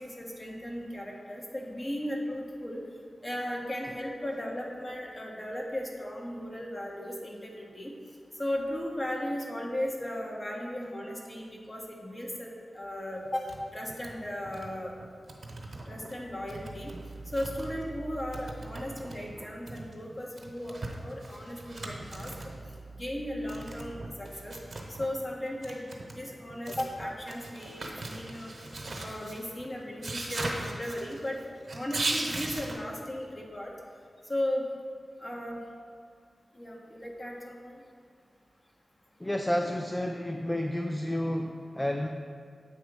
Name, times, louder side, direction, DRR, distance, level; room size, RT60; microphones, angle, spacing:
voice 1, 0.0-2.8 3.2-7.9 8.4-14.9 15.9-16.9 17.3-22.3 22.9-24.6 24.9-25.8 26.2-28.5 29.0-31.4 31.7-33.7 34.3-34.7 35.2-35.6 36.5-37.8, left 1 dB, 35° left, -1 dB, 1.3 m, -36 dB
sound 1, 13.2-13.6 13.9-14.1 14.4-14.7 15.0-16.1 16.5-18.0 18.3-22.7 23.5-25.1 25.5-32.7, right 2 dB, 55° right, 1.0 m, -39 dB
sound 2, 16.1-19.8 21.1-25.5, right 4 dB, 25° right, 0.8 m, -48 dB
voice 2, 39.2-42.1, left 1 dB, 20° left, 3 dB, 0.4 m, -30 dB
8.2 x 3.0 x 5.3 m, 2.1 s
cardioid pair, 40°, 0 cm